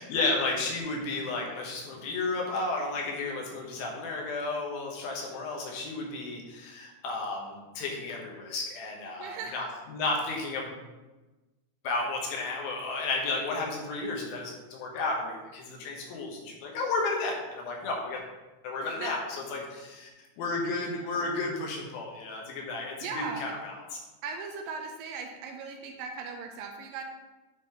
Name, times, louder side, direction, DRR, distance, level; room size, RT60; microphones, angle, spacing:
voice 1, 0.0-10.8 11.8-18.2 18.6-20.1 20.4-23.8, left 3 dB, 85° left, -1 dB, 2.9 m, -33 dB
voice 2, 9.2-9.7 18.8-19.4 23.0-23.6 24.2-27.0, right 5 dB, 80° right, 3 dB, 2.3 m, -38 dB
9.7 x 3.8 x 2.9 m, 1.1 s
omnidirectional pair, 4.2 m